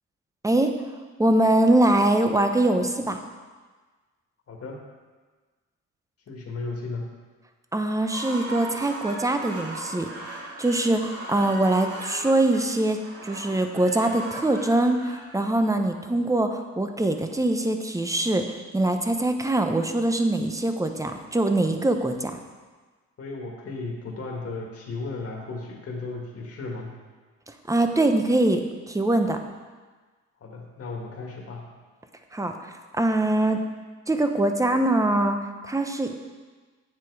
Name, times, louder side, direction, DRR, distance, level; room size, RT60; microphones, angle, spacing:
voice 1, 1.2-3.2 7.7-10.1 10.6-18.4 18.7-22.4 27.7-29.4 32.3-33.6 34.1-36.1, right 1 dB, 10° right, 6 dB, 0.9 m, -23 dB
voice 2, 4.5-4.8 6.3-7.1 23.2-26.9 30.4-31.7, left 3 dB, 50° left, -1 dB, 2.0 m, -35 dB
sound 1, 7.9-16.0, right 2 dB, 55° right, 2.4 m, -38 dB
9.2 x 7.6 x 4.8 m, 1.4 s
cardioid pair, 90°, 30 cm